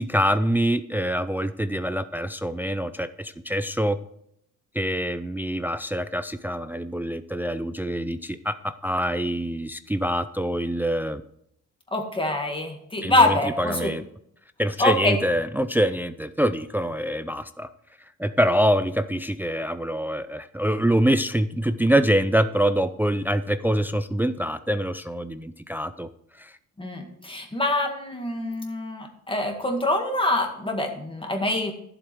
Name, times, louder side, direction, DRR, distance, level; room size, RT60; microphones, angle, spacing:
voice 1, 0.0-4.0 4.7-11.2 13.0-14.0 14.6-17.7 18.2-26.1 26.4-26.5, equal, 5° right, 12 dB, 0.4 m, -25 dB
voice 2, 11.9-13.9 14.8-15.2 26.8-31.7, left 2 dB, 15° left, 3 dB, 2.0 m, -25 dB
11.0 x 7.6 x 4.7 m, 0.73 s
cardioid pair, 90°, 30 cm